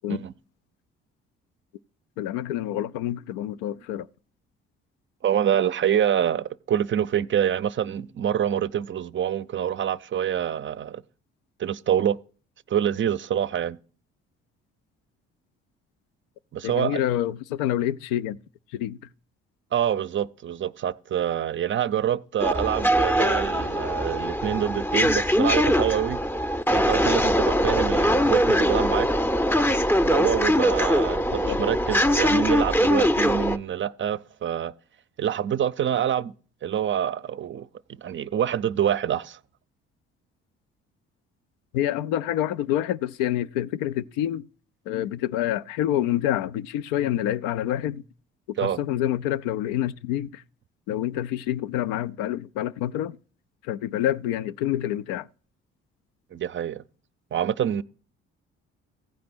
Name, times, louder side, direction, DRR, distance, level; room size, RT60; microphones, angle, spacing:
voice 1, 2.2-4.1 16.6-18.4 18.7-19.0 31.5-31.6 41.7-44.4 44.9-48.0 48.5-50.4 50.9-53.2 53.6-55.3, left 12 dB, 75° left, 0.5 m, -27 dB
voice 2, 5.2-11.0 11.6-12.2 12.7-13.8 16.5-17.0 19.7-26.2 26.7-29.1 30.0-34.7 35.2-36.3 36.6-37.7 38.0-39.4 48.6-48.8 56.3-56.8 57.3-57.8, right 9 dB, 35° right, 0.5 m, -26 dB
sound 1, 22.4-33.6, equal, 5° left, 0.6 m, -22 dB
15.0 x 5.1 x 6.0 m
hypercardioid pair, 50°, 32 cm